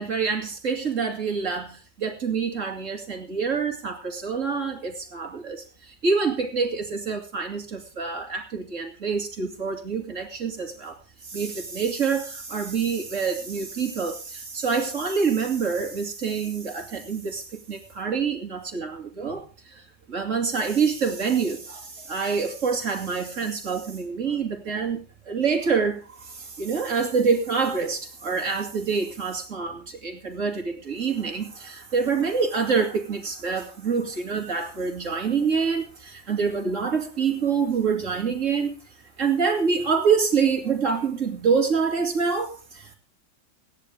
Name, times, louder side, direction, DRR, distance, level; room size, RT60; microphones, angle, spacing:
voice 1, 0.0-25.0 25.2-43.0, right 5 dB, 45° right, 2 dB, 2.9 m, -26 dB
16.5 x 10.5 x 4.9 m, 0.34 s
omnidirectional pair, 1.9 m